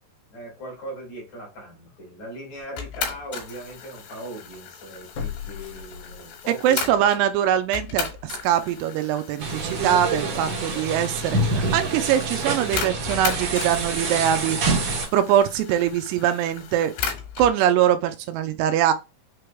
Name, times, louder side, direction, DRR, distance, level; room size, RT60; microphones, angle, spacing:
voice 1, 0.3-7.1 10.3-10.4, right 1 dB, 45° left, 3.3 m, -39 dB
sound 1, 1.9-2.0 2.6-2.7 5.1-6.6 7.0-7.1, left 8 dB, 65° left, 2.3 m, -36 dB
sound 2, 2.8-7.2 7.7-17.5, left 7 dB, 90° left, 3.3 m, -36 dB
voice 2, 6.6-14.8 15.1-16.9 17.4-18.9, right 10 dB, 85° right, 2.6 m, -22 dB
sound 3, 9.4-15.1, right 3 dB, 55° right, 2.1 m, -26 dB
6.7 x 3.3 x 2.2 m
omnidirectional pair, 4.7 m